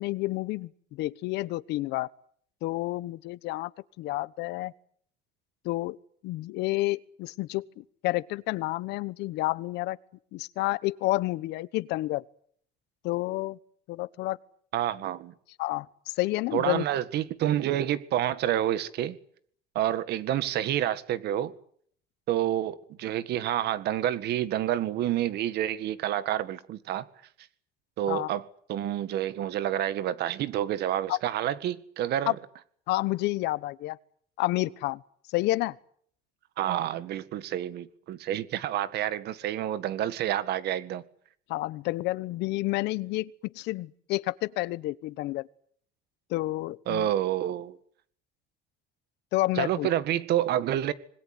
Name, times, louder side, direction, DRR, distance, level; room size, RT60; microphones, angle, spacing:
voice 1, 0.0-2.1 2.6-3.7 4.0-4.7 5.6-6.0 6.2-10.0 10.3-12.2 13.0-13.6 13.9-14.4 15.6-16.8 28.1-28.3 31.1-31.2 32.3-32.4 32.9-34.0 34.4-35.0 35.3-35.8 41.5-45.5 46.3-47.1 49.3-49.9, left 18 dB, 90° left, 1.1 m, -30 dB
voice 2, 14.7-15.3 16.5-19.2 19.8-21.5 22.3-27.1 28.0-28.4 28.7-32.4 36.6-41.0 46.9-47.8 49.6-50.9, right 12 dB, 75° right, 1.8 m, -28 dB
26.5 x 20.5 x 9.6 m
cardioid pair, 110°, 17 cm